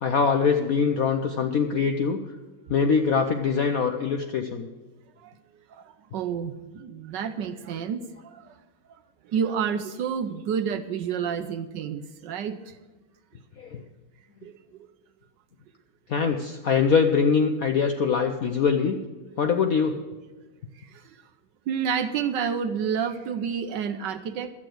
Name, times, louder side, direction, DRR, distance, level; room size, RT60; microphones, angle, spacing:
voice 1, 0.0-2.2 2.7-4.7 13.6-13.8 16.1-19.0 19.4-20.0, left 6 dB, 65° left, 5 dB, 0.8 m, -23 dB
voice 2, 6.1-8.4 9.3-12.6 14.4-14.5 21.7-24.5, right 7 dB, 70° right, 10 dB, 1.1 m, -29 dB
12.0 x 8.6 x 7.7 m, 1.3 s
omnidirectional pair, 2.4 m